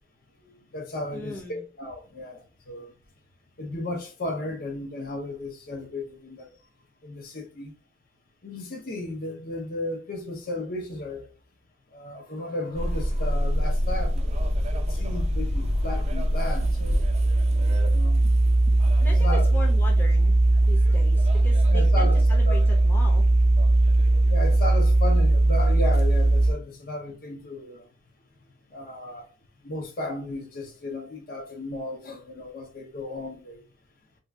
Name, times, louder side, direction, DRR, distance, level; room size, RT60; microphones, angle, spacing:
voice 1, 0.4-2.9 3.6-6.5 7.0-7.7 8.4-11.3 11.9-17.0 17.8-18.2 19.2-19.5 20.8-21.0 21.7-22.1 22.5-22.6 24.3-27.9 28.7-29.3 29.6-33.6, left 1 dB, 50° left, 0.7 m, -34 dB
voice 2, 1.1-1.6 19.0-20.3 20.7-23.2, left 1 dB, 10° left, 0.6 m, -39 dB
sound 1, 12.7-26.5, right 1 dB, 35° right, 0.5 m, -20 dB
2.7 x 2.4 x 3.4 m
head